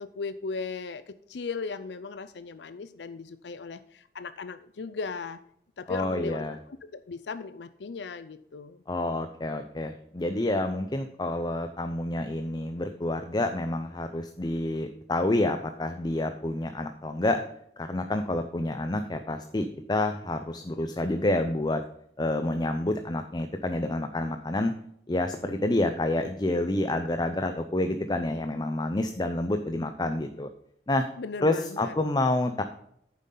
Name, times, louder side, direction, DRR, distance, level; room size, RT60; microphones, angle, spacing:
voice 1, 0.0-5.4 5.8-8.8 31.2-31.9, left 4 dB, 75° left, 12 dB, 0.5 m, -37 dB
voice 2, 5.9-6.6 8.9-17.4 17.8-21.8 22.2-24.7 25.1-30.5 30.9-31.0 31.4-32.6, left 1 dB, 25° left, 8 dB, 0.6 m, -28 dB
9.6 x 7.4 x 3.9 m, 0.70 s
head